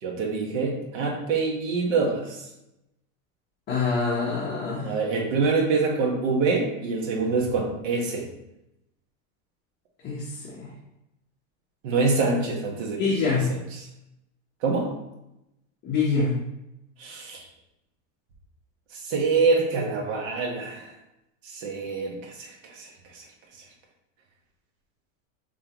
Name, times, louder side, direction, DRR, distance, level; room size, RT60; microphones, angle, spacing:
voice 1, 0.0-2.4 4.8-8.3 11.8-13.2 13.7-13.9 14.6-14.9 17.0-17.4 18.9-20.9 21.4-23.2, right 4 dB, 70° right, 0 dB, 1.4 m, -26 dB
voice 2, 3.7-4.9 10.0-10.7 13.0-13.5 15.8-16.3, left 4 dB, 25° left, -7 dB, 1.0 m, -25 dB
5.3 x 3.4 x 3.0 m, 0.89 s
supercardioid pair, 160°, 38 cm